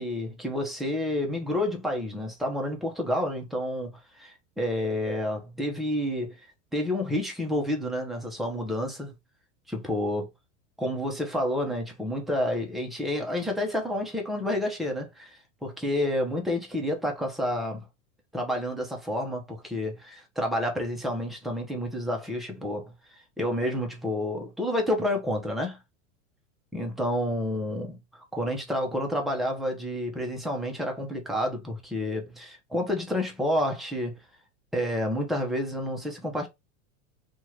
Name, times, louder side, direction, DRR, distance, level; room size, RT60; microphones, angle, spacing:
voice 1, 0.0-3.9 4.2-6.3 6.7-9.1 9.7-10.3 10.8-17.9 18.3-22.9 23.4-25.8 26.7-28.0 28.3-34.2 34.7-36.5, left 1 dB, ahead, 0.7 m, -29 dB
2.8 x 2.5 x 3.1 m
supercardioid pair, 130°, 37 cm